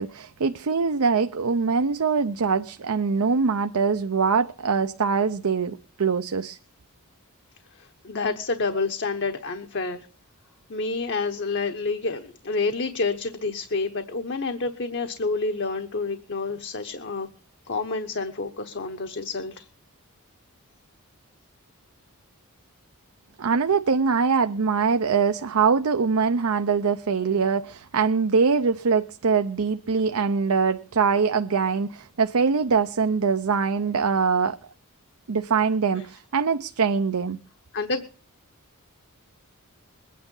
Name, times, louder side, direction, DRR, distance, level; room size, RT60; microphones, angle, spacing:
voice 1, 0.0-6.6 23.4-34.6 35.3-37.4, right 5 dB, 75° right, 0.6 m, -23 dB
voice 2, 7.8-10.1 10.7-17.3 17.7-19.7 37.7-38.0, left 3 dB, 55° left, 1.1 m, -28 dB
21.5 x 9.4 x 5.4 m
head